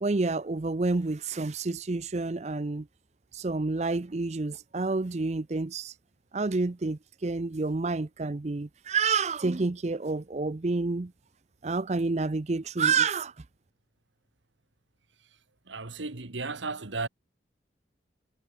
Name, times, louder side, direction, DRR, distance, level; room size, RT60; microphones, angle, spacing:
voice 1, 0.0-2.9 3.3-5.9 6.3-11.1 11.6-13.3, right 3 dB, 35° right, 0.5 m, -29 dB
voice 2, 15.7-17.1, right 3 dB, 80° right, 1.8 m, -34 dB
head